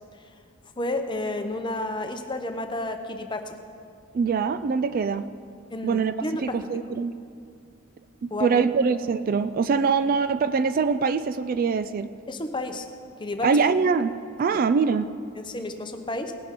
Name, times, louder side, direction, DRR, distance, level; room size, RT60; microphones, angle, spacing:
voice 1, 0.8-3.5 5.7-6.6 8.3-8.7 12.3-12.9 13.2-13.6 14.5-14.6 15.4-16.3, left 2 dB, 20° left, 6 dB, 0.8 m, -31 dB
voice 2, 4.1-5.3 5.8-6.1 6.4-7.2 8.2-12.1 13.4-14.1 14.4-15.1, right 5 dB, 45° right, 12 dB, 0.3 m, -23 dB
18.5 x 10.5 x 3.7 m, 2.4 s
head